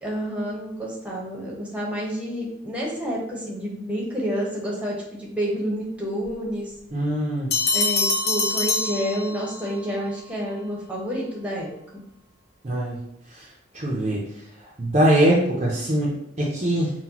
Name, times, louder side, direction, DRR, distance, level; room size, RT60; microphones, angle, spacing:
voice 1, 0.0-6.7 7.7-11.7, equal, 5° right, -4 dB, 1.0 m, -29 dB
voice 2, 6.9-7.5 12.6-13.0 13.7-14.2 14.8-16.9, right 1 dB, 35° right, -3 dB, 0.6 m, -22 dB
sound 1, 7.5-9.7, left 3 dB, 55° left, 0.6 m, -24 dB
5.7 x 2.3 x 2.9 m, 0.76 s
head